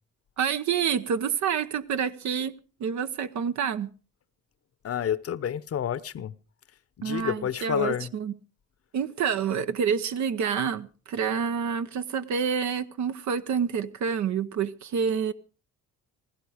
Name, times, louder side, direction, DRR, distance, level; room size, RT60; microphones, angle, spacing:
voice 1, 0.4-3.9 7.0-8.3 8.9-15.3, right 7 dB, 70° right, 0.9 m, -28 dB
voice 2, 4.8-6.3 7.0-8.1, left 9 dB, 50° left, 0.8 m, -29 dB
16.5 x 15.5 x 5.0 m
cardioid pair, 90°, 30 cm